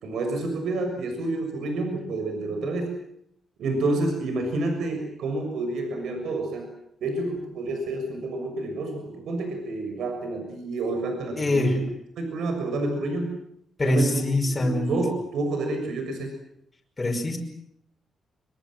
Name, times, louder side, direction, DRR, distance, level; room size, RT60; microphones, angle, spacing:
voice 1, 0.0-2.9 3.6-6.7 7.0-11.8 12.2-13.3 13.8-14.2 14.5-16.3, right 2 dB, 80° right, 5 dB, 6.8 m, -29 dB
voice 2, 11.4-11.7 13.8-14.9 17.0-17.4, left 2 dB, 25° left, 1 dB, 5.4 m, -24 dB
25.0 x 24.0 x 7.8 m, 0.74 s
cardioid pair, 120°, 0 cm